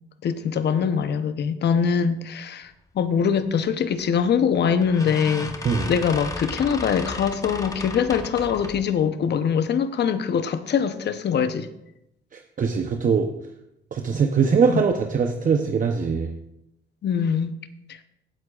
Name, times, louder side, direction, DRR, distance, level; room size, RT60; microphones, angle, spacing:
voice 1, 0.2-11.7 14.7-14.8 17.0-17.5 17.9-18.0, left 7 dB, 60° left, 0.8 m, -23 dB
sound 1, 4.1-4.3 4.8-8.9, left 2 dB, 15° left, 1.0 m, -34 dB
voice 2, 12.3-13.3 13.9-16.3, right 5 dB, 40° right, 0.8 m, -22 dB
16.5 x 7.9 x 2.4 m
cardioid pair, 90°, 20 cm